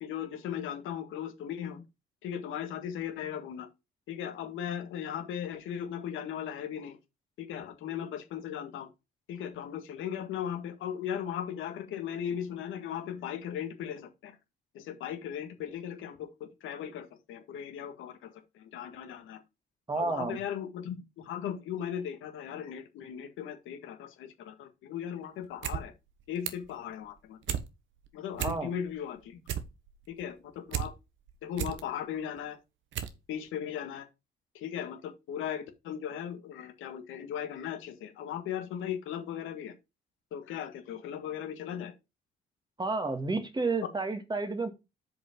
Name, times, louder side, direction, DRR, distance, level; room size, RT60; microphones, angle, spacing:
voice 1, 0.0-1.8 2.2-3.7 4.1-7.0 7.4-8.9 9.3-14.4 14.7-19.4 19.9-25.9 26.3-27.4 28.1-29.4 30.1-30.9 31.4-32.6 33.3-34.1 34.5-39.7 40.3-41.9, left 9 dB, 85° left, 1.8 m, -37 dB
voice 2, 19.9-20.4 28.4-28.7 42.8-44.7, right 3 dB, 20° right, 1.9 m, -31 dB
sound 1, 25.4-25.8 26.1-26.7 27.1-27.7 28.0-28.1 28.3-28.9 29.2-30.9 31.3-31.8 32.4-32.5 32.9-33.2 33.5-33.6, right 10 dB, 75° right, 1.2 m, -34 dB
6.5 x 5.3 x 5.2 m
cardioid pair, 90°, 20 cm